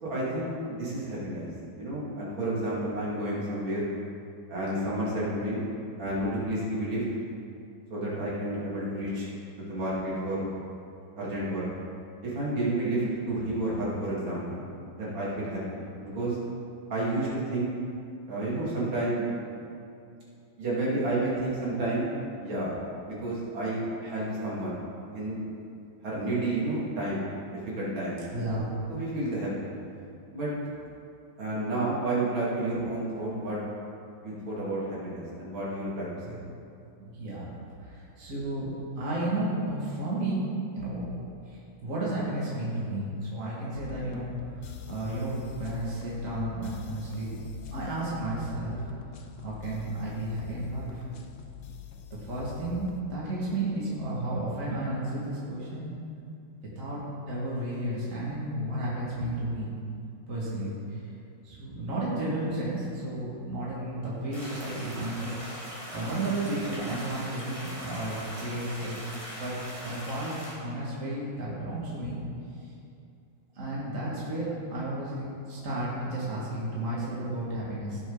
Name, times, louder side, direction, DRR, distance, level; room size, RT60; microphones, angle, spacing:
voice 1, 0.0-1.5 1.7-3.9 4.5-5.6 6.0-7.0 7.9-9.3 9.6-10.4 11.2-11.7 12.2-14.6 15.0-16.4 16.9-17.7 18.3-19.3 20.6-22.1 22.4-22.7 23.0-24.8 25.1-25.4 26.0-28.2 28.9-29.7 30.3-30.5 31.4-33.6 34.2-36.4, right 1 dB, 70° right, -7 dB, 3.2 m, -30 dB
voice 2, 28.3-28.7 36.2-36.4 37.0-37.5 37.8-40.4 40.7-41.1 41.5-47.4 47.7-48.8 49.4-51.0 52.1-55.9 56.8-59.8 60.3-61.1 61.4-65.3 65.9-69.6 69.8-72.2 72.6-72.7 73.5-78.0, right 1 dB, 40° right, -7 dB, 2.5 m, -33 dB
sound 1, 43.8-53.0, left 10 dB, 90° left, 0.6 m, -43 dB
sound 2, 64.3-70.5, equal, 15° right, 2.7 m, -41 dB
17.0 x 7.1 x 4.0 m, 2.6 s
omnidirectional pair, 2.3 m